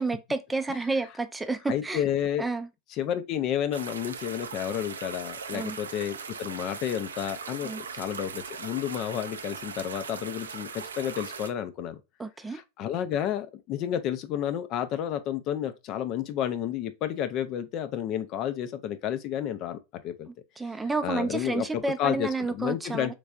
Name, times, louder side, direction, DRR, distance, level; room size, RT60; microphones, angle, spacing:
voice 1, 0.0-2.0 2.4-2.7 5.5-5.8 7.6-7.8 12.2-12.6 20.3-23.1, right 3 dB, 10° right, 0.4 m, -30 dB
voice 2, 1.7-2.5 2.9-12.0 12.5-20.3 21.0-23.1, left 10 dB, 45° left, 0.5 m, -31 dB
sound 1, 3.7-11.5, right 5 dB, 85° right, 0.4 m, -39 dB
3.3 x 3.2 x 2.3 m
hypercardioid pair, 95°, 0 cm